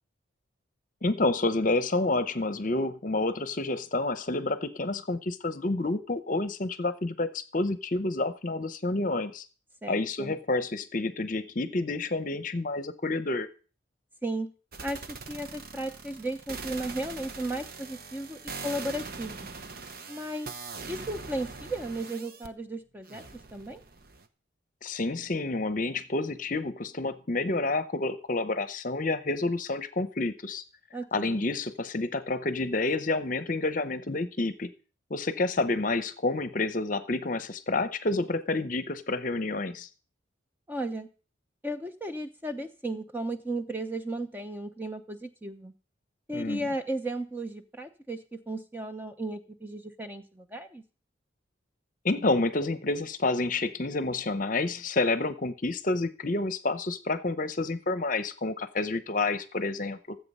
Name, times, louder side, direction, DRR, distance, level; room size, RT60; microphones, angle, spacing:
voice 1, 1.0-9.5 9.9-13.5 24.8-30.6 31.1-34.7 35.1-39.9 46.3-46.6 52.0-60.2, left 2 dB, 40° left, 12 dB, 0.8 m, -29 dB
voice 2, 9.8-10.3 14.2-14.5 14.8-19.5 20.1-20.5 20.9-23.8 30.9-31.5 40.7-41.1 41.6-45.7 46.3-50.8, right 1 dB, 10° right, 7 dB, 0.8 m, -35 dB
sound 1, 14.7-22.5 23.1-24.3, right 4 dB, 50° right, 1.0 m, -42 dB
14.0 x 7.9 x 5.5 m, 0.37 s
head